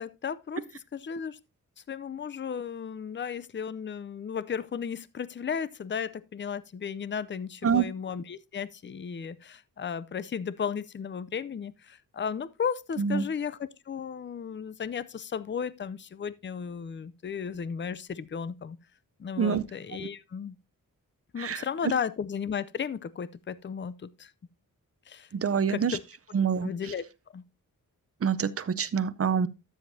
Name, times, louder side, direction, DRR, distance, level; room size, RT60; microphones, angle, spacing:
voice 1, 0.0-1.4 1.9-18.8 19.2-20.6 21.3-24.3 25.1-25.3 25.7-26.0 26.6-27.0 27.3-27.4, left 7 dB, 35° left, 0.5 m, -34 dB
voice 2, 25.3-26.0 26.3-26.7 28.2-29.5, right 6 dB, 40° right, 0.6 m, -26 dB
12.5 x 7.2 x 2.7 m
wide cardioid pair, 120°, 34 cm